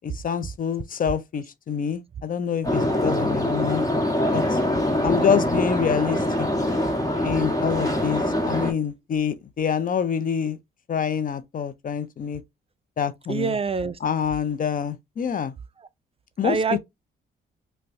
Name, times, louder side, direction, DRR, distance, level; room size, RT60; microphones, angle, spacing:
voice 1, 0.0-3.8 4.3-4.6 5.0-6.5 7.2-10.6 10.9-12.4 13.0-13.6 14.0-15.5 16.4-16.8, left 7 dB, 45° left, 0.6 m, -26 dB
sound 1, 2.6-8.7, left 1 dB, 20° left, 1.2 m, -24 dB
voice 2, 13.3-14.0 16.4-16.8, right 5 dB, 30° right, 0.3 m, -25 dB
5.4 x 2.2 x 2.6 m
cardioid pair, 90°, 20 cm